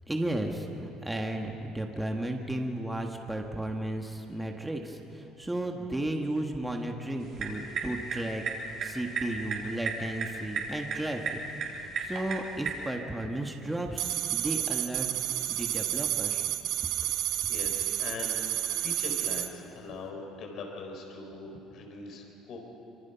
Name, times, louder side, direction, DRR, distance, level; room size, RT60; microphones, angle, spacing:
voice 1, 0.1-8.4 8.8-16.4, right 1 dB, 5° right, 2 dB, 1.5 m, -34 dB
sound 1, 7.2-12.9, right 4 dB, 50° right, 3.6 m, -36 dB
sound 2, 14.0-19.5, right 12 dB, 65° right, 1.2 m, -30 dB
voice 2, 17.5-22.6, left 3 dB, 50° left, 2 dB, 4.3 m, -41 dB
25.0 x 24.5 x 5.8 m, 2.8 s
cardioid pair, 140°, 0 cm